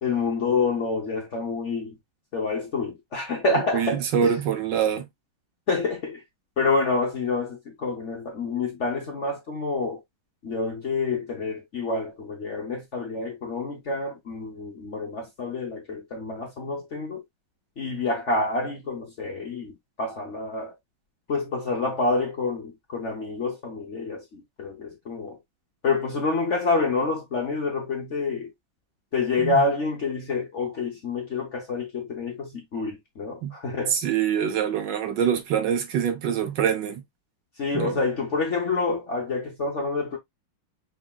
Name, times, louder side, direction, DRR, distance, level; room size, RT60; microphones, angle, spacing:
voice 1, 0.0-2.0 2.3-4.3 5.7-6.2 6.6-10.0 10.4-17.2 17.8-20.7 21.3-25.4 25.8-28.5 29.1-34.0 37.6-40.2, left 3 dB, 50° left, 0.9 m, -28 dB
voice 2, 3.7-5.1 29.4-29.7 33.4-33.6 33.9-37.0 37.7-38.0, right 8 dB, 70° right, 1.4 m, -25 dB
5.1 x 3.5 x 2.2 m
omnidirectional pair, 2.2 m